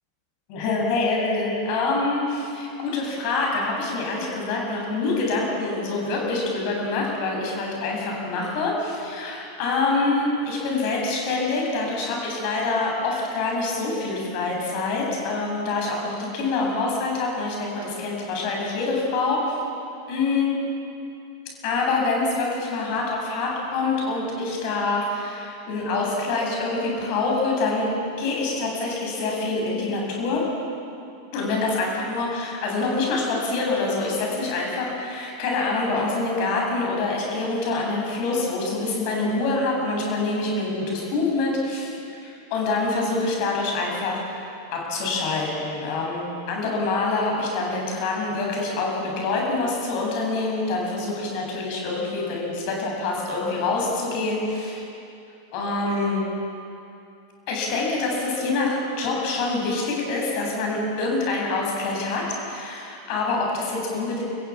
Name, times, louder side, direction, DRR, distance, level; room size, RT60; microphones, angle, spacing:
voice 1, 0.5-19.5 20.1-20.6 21.6-30.5 31.3-54.8 55.5-56.3 57.5-64.2, left 3 dB, 45° left, -1 dB, 7.8 m, -26 dB
29.0 x 15.5 x 8.6 m, 2.6 s
figure-of-eight pair, 90°, 0 cm